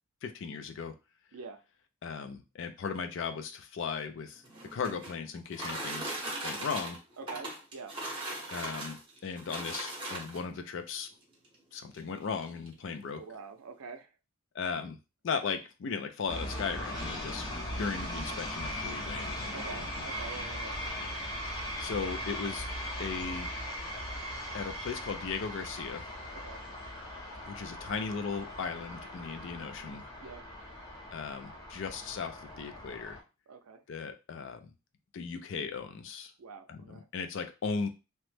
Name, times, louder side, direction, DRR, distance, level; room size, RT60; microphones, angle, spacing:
voice 1, 0.2-0.9 2.0-4.4 4.7-6.1 6.4-7.0 8.5-11.1 11.7-13.2 14.5-15.0 15.2-17.5 17.7-19.8 21.0-21.1 21.8-22.7 23.0-23.5 24.5-26.0 27.4-30.0 31.1-33.2 33.9-34.7 35.1-36.3 36.7-37.9, left 5 dB, 55° left, 7 dB, 0.4 m, -37 dB
voice 2, 1.3-1.6 7.2-7.9 13.2-14.1 19.5-21.2 26.3-26.6 30.2-30.4 33.5-33.8 36.4-37.1, right 5 dB, 85° right, 7 dB, 0.5 m, -46 dB
sound 1, 4.4-10.6 11.4-11.5 11.9-12.0 12.4-12.7, right 1 dB, 25° right, 0.8 m, -39 dB
sound 2, 16.3-33.2, equal, 20° left, 0.7 m, -39 dB
3.0 x 2.1 x 3.2 m, 0.29 s
head